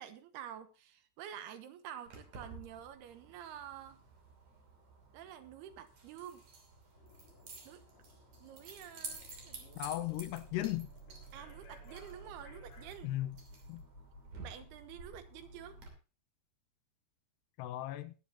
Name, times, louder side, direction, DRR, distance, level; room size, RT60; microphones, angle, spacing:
voice 1, 0.0-4.0 5.1-6.4 7.7-7.8 8.4-9.9 11.3-13.1 14.4-15.8, right 10 dB, 75° right, 3.0 m, -49 dB
Keys jangling, 2.1-15.9, right 4 dB, 45° right, 3.8 m, -53 dB
sound 1, 6.9-13.0, left 4 dB, 65° left, 5.4 m, -61 dB
sound 2, 9.1-15.9, right 2 dB, 20° left, 6.7 m, -55 dB
voice 2, 9.8-10.9 13.0-13.3 13.7-13.8 17.6-18.1, left 15 dB, 85° left, 2.9 m, -36 dB
21.0 x 9.1 x 2.8 m
omnidirectional pair, 4.8 m